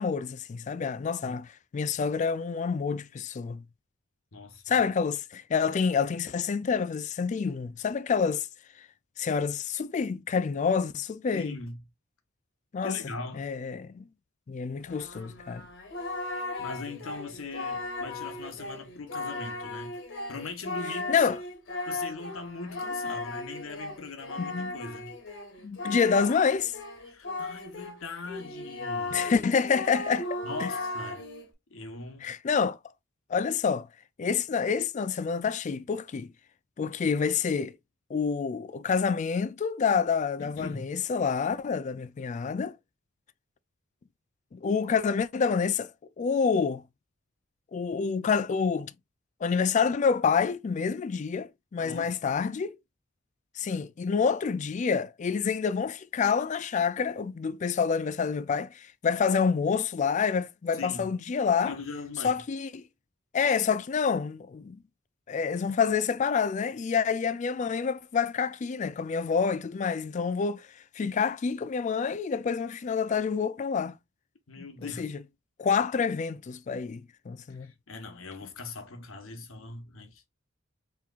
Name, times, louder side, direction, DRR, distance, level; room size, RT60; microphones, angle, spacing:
voice 1, 0.0-3.6 4.7-8.5 8.8-8.9 9.2-11.6 12.7-13.0 13.4-14.0 14.5-15.6 21.1-21.4 24.4-24.7 25.6-26.7 29.1-30.7 32.2-32.8 33.3-33.9 34.2-36.3 36.8-37.8 38.1-42.8 44.5-45.9 46.2-46.8 47.7-48.9 49.4-52.8 53.6-61.7 62.2-62.8 63.3-64.8 65.3-70.7 71.0-74.0 74.6-74.7 75.0-75.1 75.6-77.7, left 6 dB, 35° left, 0.3 m, -28 dB
voice 2, 4.3-4.8 11.3-11.8 12.8-13.5 16.6-20.0 20.3-21.3 21.9-25.1 27.1-29.3 30.4-31.2 31.7-32.3 40.4-40.9 51.8-52.2 60.7-61.1 61.6-62.4 74.5-75.1 77.5-80.2, left 3 dB, 85° left, 1.0 m, -40 dB
Singing, 14.8-28.0 28.3-31.5, left 2 dB, 65° left, 1.2 m, -37 dB
4.5 x 3.5 x 2.4 m
head